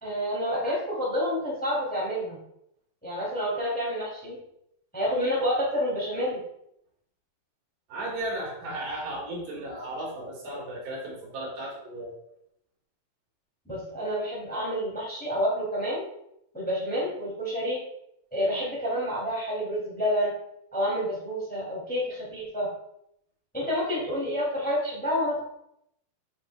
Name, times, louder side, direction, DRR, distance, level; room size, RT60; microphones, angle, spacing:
voice 1, 0.0-2.4 3.0-4.4 4.9-6.4 13.6-16.0 16.5-17.8 18.3-20.3 20.7-22.7 23.5-25.4, equal, 5° left, -5 dB, 2.4 m, -28 dB
voice 2, 7.9-12.2, right 1 dB, 90° right, -4 dB, 4.3 m, -35 dB
9.0 x 6.8 x 2.4 m, 0.76 s
omnidirectional pair, 4.2 m